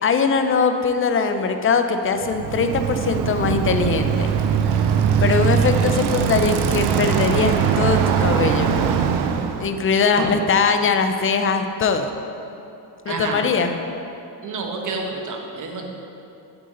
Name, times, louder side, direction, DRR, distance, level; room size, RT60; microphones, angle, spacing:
voice 1, 0.0-4.3 5.2-8.8 9.6-12.1 13.1-13.9, left 5 dB, 35° left, 7 dB, 0.5 m, -21 dB
Bicycle, 2.2-9.7, right 7 dB, 75° right, 0.6 m, -21 dB
voice 2, 13.1-13.4 14.4-15.8, right 3 dB, 50° right, 2 dB, 1.1 m, -28 dB
8.5 x 8.1 x 3.8 m, 2.8 s
cardioid pair, 150°, 40 cm